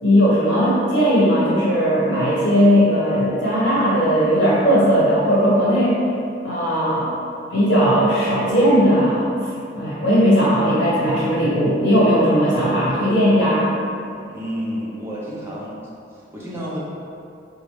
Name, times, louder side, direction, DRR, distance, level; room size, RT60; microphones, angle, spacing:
voice 1, 0.0-6.0 6.4-7.1 7.5-9.3 9.7-13.7, equal, 70° left, -9 dB, 1.3 m, -17 dB
voice 2, 14.3-15.8 16.2-16.8, equal, 15° right, -7 dB, 0.5 m, -30 dB
4.0 x 2.3 x 3.3 m, 2.5 s
head